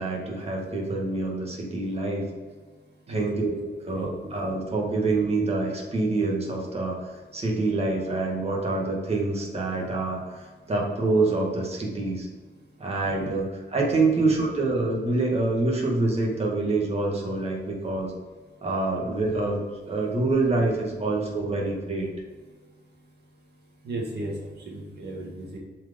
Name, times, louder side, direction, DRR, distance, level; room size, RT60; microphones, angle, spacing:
voice 1, 0.0-2.3 3.1-3.5 3.8-12.3 12.8-18.1 18.6-19.6 19.9-22.1, right 3 dB, 35° right, -2 dB, 2.0 m, -26 dB
voice 2, 3.1-3.5 3.9-4.3 23.8-24.3 24.6-25.6, right 2 dB, 60° right, -1 dB, 1.7 m, -35 dB
7.8 x 4.9 x 5.2 m, 1.4 s
cardioid pair, 115°, 18 cm